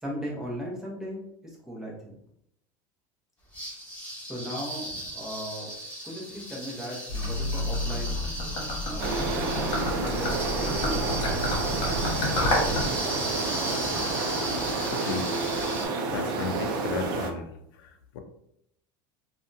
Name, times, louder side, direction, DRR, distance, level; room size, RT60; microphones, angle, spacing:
voice 1, 0.0-2.2 4.1-5.7 6.0-8.2 8.9-10.9 12.2-12.9, equal, 5° right, -4 dB, 0.8 m, -38 dB
sound 1, 3.5-15.9, right 1 dB, 15° left, 1.2 m, -36 dB
Gurgling / Liquid, 7.1-12.9, left 2 dB, 40° left, 1.2 m, -30 dB
sound 2, 9.0-17.3, right 3 dB, 75° right, 0.5 m, -30 dB
voice 2, 14.9-15.3 16.1-17.5 17.8-18.2, left 5 dB, 80° left, 5 dB, 0.4 m, -34 dB
2.7 x 2.2 x 2.6 m, 0.75 s
supercardioid pair, 130°, 11 cm